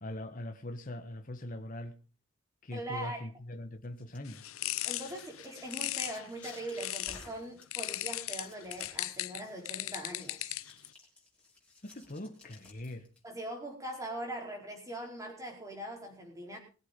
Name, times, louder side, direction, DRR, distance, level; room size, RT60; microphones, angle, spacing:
voice 1, 0.0-1.9 2.6-4.5 11.8-13.1, left 1 dB, 40° left, 1.3 m, -41 dB
voice 2, 2.7-3.2 4.8-10.6 13.2-16.6, right 1 dB, 15° right, 4.7 m, -41 dB
sound 1, 3.8-13.2, left 2 dB, 5° left, 5.5 m, -56 dB
sound 2, 4.3-7.3 7.7-10.9, left 16 dB, 75° left, 0.6 m, -38 dB
21.0 x 8.4 x 5.3 m
head